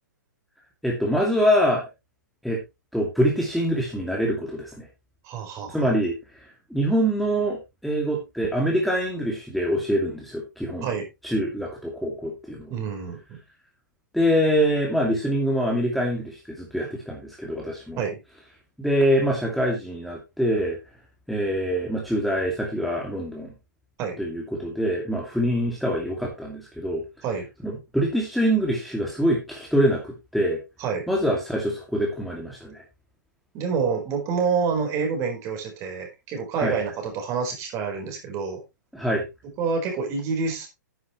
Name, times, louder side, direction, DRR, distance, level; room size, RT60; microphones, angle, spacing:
voice 1, 0.8-1.8 2.4-2.6 2.9-4.9 5.7-10.9 11.2-12.7 14.1-18.0 18.8-20.8 21.3-23.5 24.2-27.0 27.6-30.6 31.1-32.8 36.6-36.8 38.9-39.2, equal, ahead, -2 dB, 2.5 m, -24 dB
voice 2, 5.2-5.9 10.8-11.1 12.7-13.4 18.0-18.2 24.0-24.2 27.2-27.5 30.8-31.1 33.5-38.6 39.6-40.7, right 5 dB, 30° right, 4 dB, 4.5 m, -27 dB
10.5 x 9.8 x 3.1 m, 0.24 s
figure-of-eight pair, 120°, 10 cm